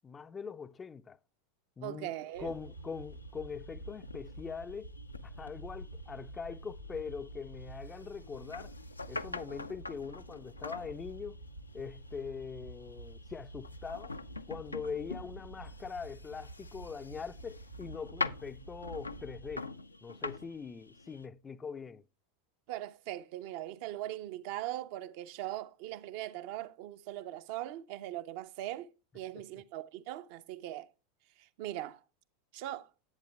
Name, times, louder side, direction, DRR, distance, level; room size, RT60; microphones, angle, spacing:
voice 1, 0.0-1.2 1.8-2.1 2.4-4.9 5.2-8.7 9.1-11.4 11.7-14.1 14.5-19.7 20.0-22.0 29.3-29.4, left 5 dB, 20° left, 0.4 m, -42 dB
voice 2, 1.8-2.5 22.7-30.9 31.4-32.0 32.5-32.9, right 14 dB, 50° right, 0.6 m, -40 dB
sound 1, 2.3-21.3, left 3 dB, 85° left, 0.4 m, -45 dB
sound 2, 2.3-19.6, right 2 dB, 90° right, 0.8 m, -49 dB
10.5 x 8.3 x 2.2 m
figure-of-eight pair, 85°, 0 cm